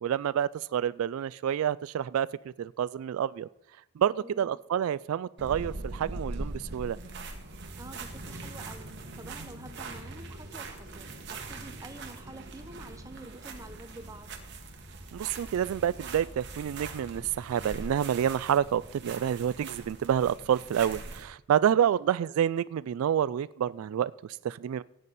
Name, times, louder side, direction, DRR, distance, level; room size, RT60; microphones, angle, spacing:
voice 1, 0.0-2.3 2.6-3.5 4.0-7.0 15.1-24.8, right 9 dB, 85° right, 0.3 m, -28 dB
voice 2, 4.2-4.6 7.8-14.3, right 2 dB, 15° right, 0.9 m, -48 dB
sound 1, 5.4-21.3, right 2 dB, 55° right, 1.6 m, -42 dB
17.0 x 9.1 x 4.1 m
head